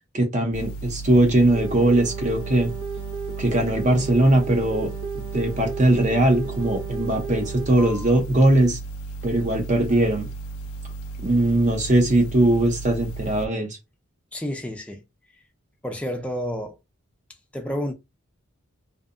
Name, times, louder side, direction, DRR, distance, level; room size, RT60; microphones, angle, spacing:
voice 1, 0.1-2.7 3.4-4.9 5.1-8.8 9.2-10.3 11.2-13.8, right 1 dB, 35° right, 0.6 m, -20 dB
sound 1, 0.5-13.5, right 3 dB, 75° left, 0.4 m, -35 dB
sound 2, 1.5-8.1 9.9-10.1, right 6 dB, 90° right, 0.6 m, -34 dB
voice 2, 14.3-15.0 15.8-16.8 17.5-17.9, equal, 5° left, 0.4 m, -30 dB
2.7 x 2.1 x 2.5 m
head